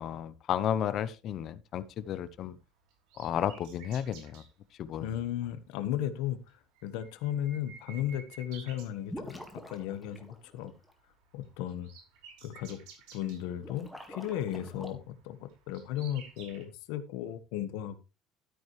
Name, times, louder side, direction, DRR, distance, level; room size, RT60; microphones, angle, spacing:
voice 1, 0.0-2.6 3.2-4.4 4.8-5.1, left 10 dB, 40° left, 16 dB, 0.8 m, -33 dB
Nightingale - Nachtigall, 1.9-4.5 5.4-5.7 6.0-6.1 6.4-9.6 9.9-10.3 10.5-16.6, right 6 dB, 80° right, 5.1 m, -54 dB
voice 2, 5.0-6.4 6.8-10.7 11.3-11.9 12.4-12.8 13.1-18.0, left 11 dB, 85° left, 12 dB, 1.3 m, -35 dB
Bubbles In Water, 9.1-10.9 13.5-14.9, equal, ahead, 1.8 m, -45 dB
13.0 x 9.2 x 3.2 m, 0.29 s
cardioid pair, 170°, 0 cm